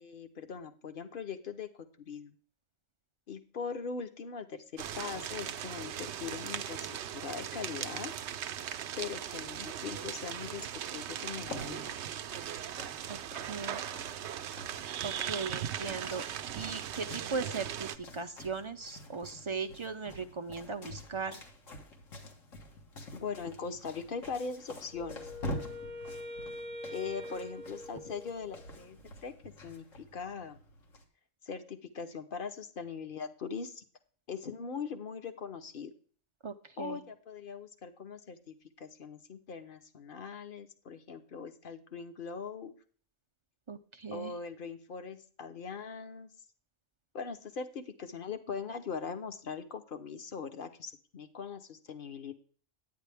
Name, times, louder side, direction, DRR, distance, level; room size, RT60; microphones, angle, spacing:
voice 1, 0.0-1.7 2.1-2.4 3.3-8.1 9.0-10.7 10.9-11.9 23.1-25.2 26.9-30.6 31.4-33.8 34.3-35.9 36.8-42.7 44.1-46.3 47.1-52.3, left 5 dB, 45° left, 8 dB, 1.0 m, -41 dB
sound 1, 4.8-18.0, right 10 dB, 65° right, 0.8 m, -39 dB
sound 2, 11.4-31.0, left 1 dB, 75° left, 1.8 m, -47 dB
voice 2, 13.1-13.8 15.0-16.2 16.6-21.4 36.4-37.0 43.7-44.3, right 4 dB, 45° right, 6 dB, 0.4 m, -38 dB
Wind instrument woodwind instrument, 24.9-28.8, left 1 dB, 5° left, 0.7 m, -44 dB
9.6 x 9.2 x 3.4 m, 0.43 s
omnidirectional pair, 1.3 m